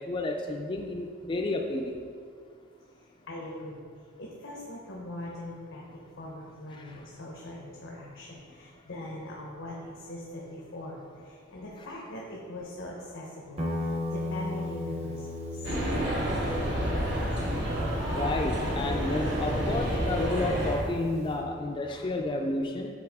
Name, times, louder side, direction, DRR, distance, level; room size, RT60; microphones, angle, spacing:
voice 1, 0.0-1.9 6.7-7.0 11.8-11.9 18.1-22.9, left 2 dB, 25° left, 2 dB, 0.3 m, -31 dB
voice 2, 3.3-3.8 4.2-5.8 6.2-15.3, left 1 dB, 85° left, -3 dB, 0.9 m, -41 dB
Guitar, 13.6-21.4, left 2 dB, 35° right, 0.8 m, -37 dB
sound 1, 15.6-20.8, equal, 60° right, 1.5 m, -29 dB
7.7 x 4.2 x 3.5 m, 2.1 s
head